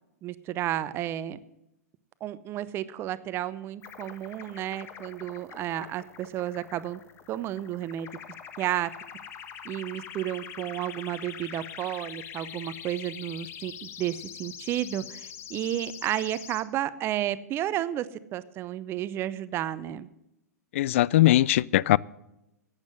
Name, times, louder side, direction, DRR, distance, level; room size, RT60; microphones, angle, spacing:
voice 1, 0.2-1.4 2.2-7.0 7.3-8.1 8.6-8.9 9.6-18.1 18.3-20.1, right 12 dB, 30° right, 0.7 m, -32 dB
sound 1, 3.8-16.6, left 8 dB, 30° left, 1.1 m, -44 dB
voice 2, 20.7-22.0, left 15 dB, 50° left, 0.3 m, -20 dB
11.5 x 9.0 x 7.7 m
figure-of-eight pair, 105°, 9 cm